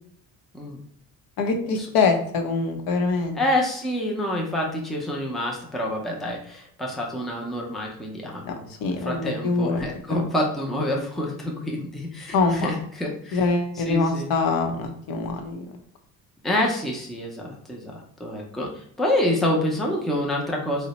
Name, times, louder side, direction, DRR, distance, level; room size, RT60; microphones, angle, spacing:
voice 1, 1.4-3.4 8.4-8.5 8.8-9.8 10.1-10.3 12.3-12.7 13.3-15.7, left 4 dB, 75° left, 5 dB, 0.7 m, -24 dB
voice 2, 3.3-8.7 9.0-13.4 13.8-14.3 16.4-18.7 19.0-20.9, left 1 dB, ahead, -1 dB, 0.4 m, -27 dB
2.8 x 2.1 x 4.0 m, 0.67 s
cardioid pair, 140°, 36 cm